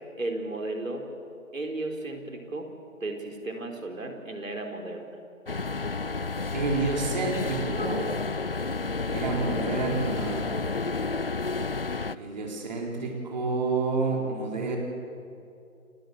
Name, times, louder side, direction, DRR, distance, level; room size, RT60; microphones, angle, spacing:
voice 1, 0.2-1.1 1.5-2.7 3.0-5.0 8.7-9.2, right 2 dB, 65° right, 3 dB, 4.3 m, -35 dB
sound 1, 5.5-12.2, left 3 dB, 40° left, 0.5 m, -30 dB
voice 2, 6.5-8.1 9.1-10.5 12.1-14.8, right 3 dB, 30° right, 0 dB, 3.8 m, -29 dB
29.5 x 19.5 x 8.1 m, 2.7 s
figure-of-eight pair, 160°, 42 cm